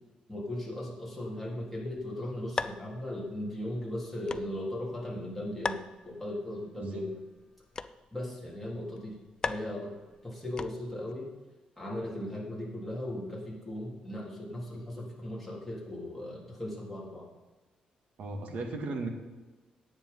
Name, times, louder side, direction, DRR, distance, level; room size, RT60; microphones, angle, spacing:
voice 1, 0.3-7.2 8.1-9.2 9.4-9.9 10.2-11.3 11.8-17.3, left 1 dB, 5° left, -5 dB, 3.6 m, -37 dB
sound 1, 1.8-11.1, left 4 dB, 30° left, 0.5 m, -41 dB
voice 2, 18.2-19.1, right 3 dB, 70° right, 2 dB, 2.0 m, -36 dB
10.5 x 9.0 x 5.5 m, 1.2 s
cardioid pair, 120°, 2 cm